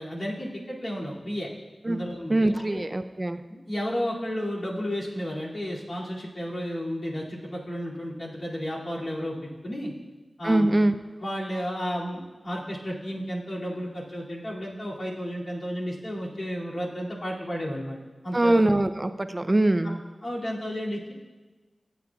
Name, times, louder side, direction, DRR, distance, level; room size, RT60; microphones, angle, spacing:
voice 1, 0.0-1.5 1.8-2.8 3.7-9.9 10.4-10.7 11.2-18.6 20.2-21.1, equal, 60° left, -6 dB, 2.5 m, -32 dB
voice 2, 2.3-3.4 10.4-11.0 18.3-20.0, right 1 dB, 30° right, 10 dB, 0.4 m, -23 dB
18.0 x 8.1 x 2.4 m, 1.3 s
wide cardioid pair, 55°, 0 cm